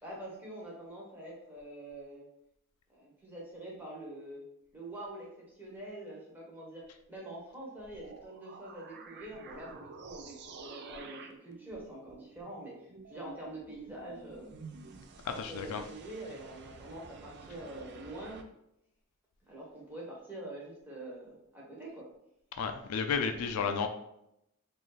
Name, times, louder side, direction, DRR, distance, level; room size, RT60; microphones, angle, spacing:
voice 1, 0.0-2.3 2.9-4.4 4.7-6.8 7.1-14.5 15.3-18.4 19.4-22.1, right 1 dB, 10° right, -5 dB, 1.0 m, -45 dB
sound 1, 8.0-18.4, right 4 dB, 50° right, 0.4 m, -50 dB
voice 2, 15.2-15.8 22.6-23.9, left 5 dB, 85° left, 6 dB, 0.4 m, -32 dB
3.1 x 2.6 x 3.9 m, 0.82 s
head